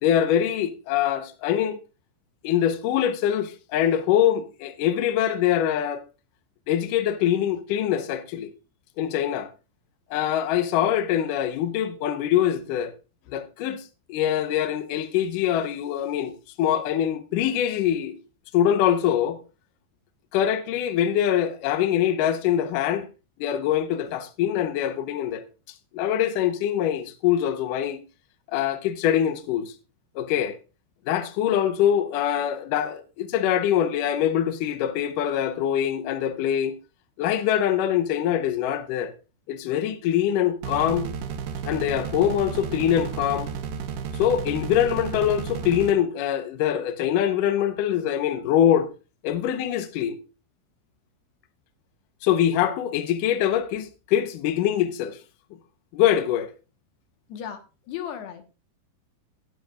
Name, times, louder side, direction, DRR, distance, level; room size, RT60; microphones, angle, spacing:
voice 1, 0.0-1.8 2.4-6.0 6.7-8.5 9.0-9.5 10.1-12.9 13.3-13.8 14.1-18.2 18.5-19.4 20.3-23.1 23.4-25.4 25.9-28.0 28.5-29.7 30.2-30.6 31.1-36.8 37.2-39.1 39.5-41.1 41.6-43.5 44.1-48.9 49.2-50.2 52.2-55.2 55.9-56.5, left 10 dB, 70° left, 2.2 m, -24 dB
sound 1, 40.6-45.9, right 6 dB, 70° right, 2.0 m, -33 dB
voice 2, 57.3-58.4, left 9 dB, 85° left, 3.4 m, -36 dB
18.5 x 7.7 x 2.5 m
omnidirectional pair, 4.7 m